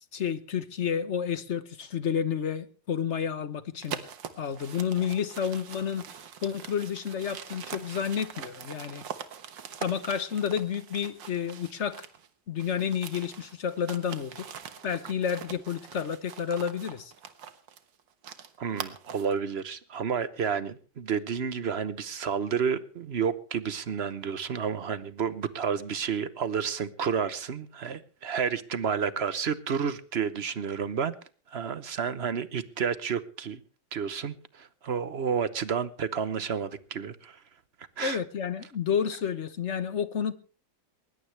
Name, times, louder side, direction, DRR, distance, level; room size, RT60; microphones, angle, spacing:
voice 1, 0.1-4.0 4.4-6.0 6.4-9.0 9.8-12.0 12.5-14.5 14.8-17.1 38.0-40.3, left 8 dB, 50° left, 1.1 m, -30 dB
sound 1, 3.8-12.3 12.6-19.4, right 8 dB, 85° right, 2.0 m, -43 dB
voice 2, 18.6-31.1 31.5-33.6 33.9-37.4 38.0-38.2, right 6 dB, 45° right, 0.9 m, -30 dB
21.0 x 19.5 x 3.3 m
omnidirectional pair, 2.0 m